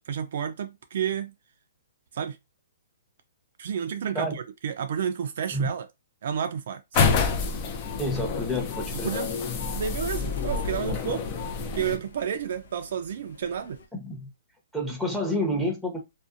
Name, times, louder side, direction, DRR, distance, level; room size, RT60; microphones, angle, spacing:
voice 1, 0.0-1.3 2.1-2.4 3.6-5.9 6.2-7.2 9.0-9.3 9.7-11.3 11.8-13.8, right 8 dB, 60° right, 0.4 m, -31 dB
sound 1, 6.9-12.0, left 5 dB, 35° left, 0.5 m, -28 dB
voice 2, 8.0-9.1 13.9-14.3 14.7-16.0, left 1 dB, ahead, 0.8 m, -29 dB
sound 2, 8.3-13.9, equal, 80° left, 0.7 m, -40 dB
2.6 x 2.1 x 2.4 m
hypercardioid pair, 145°, 0 cm